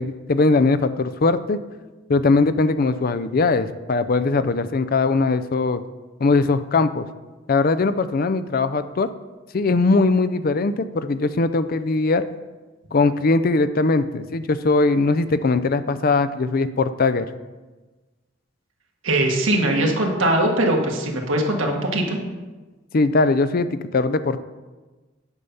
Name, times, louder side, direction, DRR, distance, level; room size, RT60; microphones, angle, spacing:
voice 1, 0.0-1.6 2.1-5.8 6.2-7.1 7.5-9.1 9.5-12.2 12.9-17.3 22.9-24.4, left 3 dB, 45° left, 12 dB, 0.5 m, -20 dB
voice 2, 19.0-22.2, right 1 dB, 80° right, 1 dB, 1.6 m, -21 dB
9.7 x 5.8 x 5.5 m, 1.2 s
head